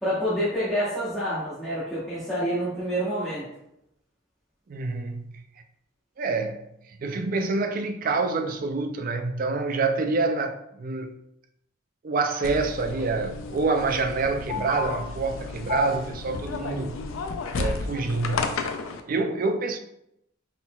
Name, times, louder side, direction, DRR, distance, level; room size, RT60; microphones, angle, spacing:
voice 1, 0.0-3.4, equal, ahead, 1.0 m, -27 dB
voice 2, 4.7-5.2 6.2-6.6 6.9-11.1 12.0-17.0 17.5-18.6 19.1-19.8, right 3 dB, 45° right, 0.3 m, -27 dB
sound 1, 12.4-19.0, left 4 dB, 75° left, 0.4 m, -32 dB
4.0 x 3.8 x 2.3 m
head